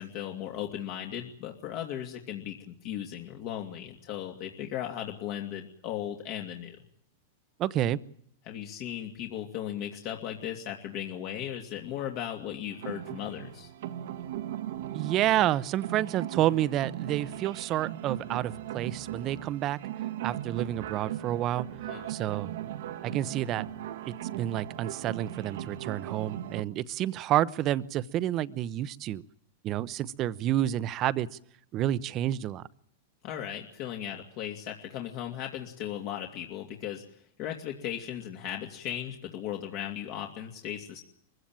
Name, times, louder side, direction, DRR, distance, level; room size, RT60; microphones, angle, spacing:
voice 1, 0.0-6.8 8.4-13.7 21.9-22.1 33.2-37.0 37.4-41.0, left 10 dB, 50° left, 1 dB, 2.7 m, -37 dB
voice 2, 7.6-8.0 14.9-19.8 20.2-21.7 22.1-22.5 23.0-23.6 24.1-29.2 29.6-31.3 31.7-32.6, right 13 dB, 40° right, 18 dB, 0.9 m, -29 dB
sound 1, 12.7-26.6, right 12 dB, 70° right, 1.4 m, -38 dB
23.0 x 16.0 x 9.0 m, 0.70 s
hypercardioid pair, 120°, 0 cm